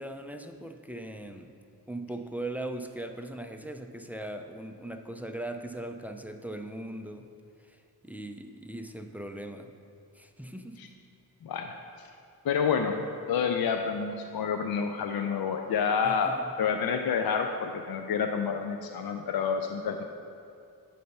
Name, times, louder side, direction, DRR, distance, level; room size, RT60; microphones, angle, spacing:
voice 1, 0.0-1.5 1.9-7.3 7.6-9.7 10.1-10.9 16.0-16.5, right 1 dB, 5° right, 6 dB, 0.3 m, -39 dB
voice 2, 11.4-12.1 12.4-12.9 13.3-20.0, left 6 dB, 60° left, 5 dB, 0.5 m, -29 dB
7.7 x 3.4 x 5.3 m, 2.5 s
cardioid pair, 55°, 41 cm